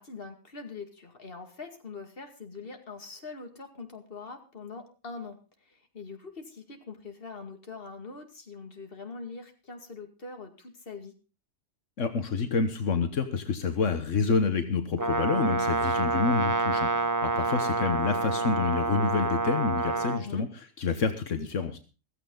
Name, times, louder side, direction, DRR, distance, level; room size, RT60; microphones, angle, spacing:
voice 1, 0.0-5.4 5.7-11.1 15.3-15.8 17.5-17.7 20.1-20.5, left 4 dB, 50° left, 5 dB, 2.5 m, -43 dB
voice 2, 12.0-20.5 20.8-21.8, left 5 dB, 85° left, 8 dB, 1.6 m, -28 dB
Brass instrument, 15.0-20.2, right 3 dB, 15° right, 1.1 m, -28 dB
15.5 x 15.0 x 3.9 m, 0.32 s
omnidirectional pair, 1.3 m